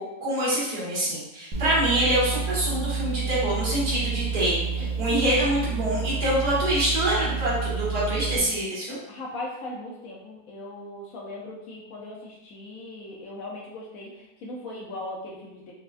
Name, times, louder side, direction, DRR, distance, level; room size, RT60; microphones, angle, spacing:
voice 1, 0.0-9.0, right 1 dB, 65° right, -10 dB, 2.0 m, -25 dB
my mixer hum, 1.5-8.4, right 5 dB, 90° right, 1.4 m, -29 dB
voice 2, 4.7-5.1 9.1-15.7, left 2 dB, 70° left, -2 dB, 0.8 m, -39 dB
4.7 x 2.2 x 2.4 m, 0.92 s
omnidirectional pair, 1.9 m